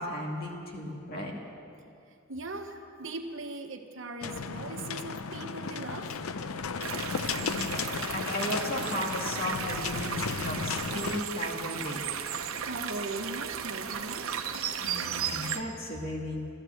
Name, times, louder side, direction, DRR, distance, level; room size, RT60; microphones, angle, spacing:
voice 1, 0.0-1.4 7.4-12.1 14.8-16.4, left 1 dB, 45° left, 0 dB, 2.3 m, -35 dB
voice 2, 2.3-6.2 12.7-14.3, right 2 dB, 65° right, 5 dB, 1.1 m, -39 dB
sound 1, 4.2-11.2, left 5 dB, 90° left, 0.6 m, -35 dB
sound 2, 6.8-15.6, right 8 dB, 85° right, 0.9 m, -35 dB
14.0 x 13.0 x 7.9 m, 2.7 s
head